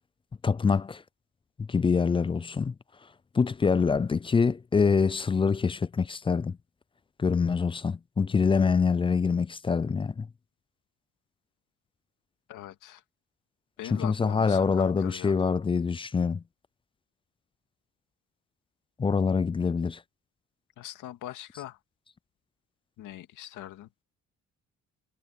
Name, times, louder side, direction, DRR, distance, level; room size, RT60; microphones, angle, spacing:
voice 1, 0.4-1.0 1.6-2.7 3.3-6.6 7.2-10.3 13.9-16.4 19.0-20.0, left 5 dB, 20° left, 0.3 m, -25 dB
voice 2, 12.5-13.0 13.8-15.5 20.8-21.8 23.0-23.9, left 13 dB, 85° left, 2.3 m, -42 dB
cardioid pair, 90°, 30 cm